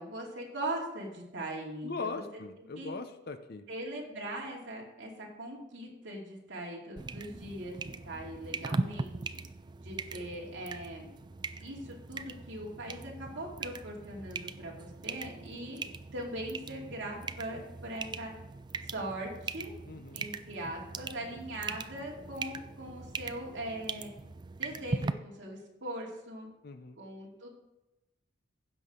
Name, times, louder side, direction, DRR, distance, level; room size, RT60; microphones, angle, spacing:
voice 1, 0.0-2.2 2.6-2.9 3.7-9.4 9.8-11.1 11.6-15.8 16.1-18.3 18.8-19.7 20.1-24.1 24.6-26.5 27.0-27.5, right 1 dB, 65° right, -2 dB, 2.5 m, -40 dB
voice 2, 1.8-3.6 19.9-20.2 26.6-27.0, left 3 dB, 50° left, 9 dB, 0.7 m, -40 dB
sound 1, 7.0-25.1, right 3 dB, 20° right, 0.3 m, -40 dB
15.5 x 6.4 x 3.7 m, 0.93 s
head